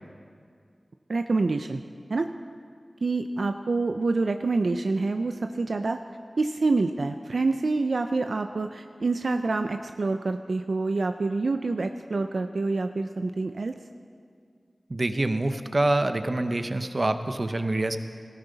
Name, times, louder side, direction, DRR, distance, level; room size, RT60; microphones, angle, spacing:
voice 1, 1.1-1.8 2.1-2.3 3.0-6.0 6.4-13.7, right 3 dB, 80° right, 7 dB, 0.4 m, -27 dB
voice 2, 14.9-18.0, right 2 dB, 50° right, 9 dB, 0.8 m, -26 dB
17.5 x 14.5 x 4.0 m, 2.2 s
cardioid pair, 45°, 0 cm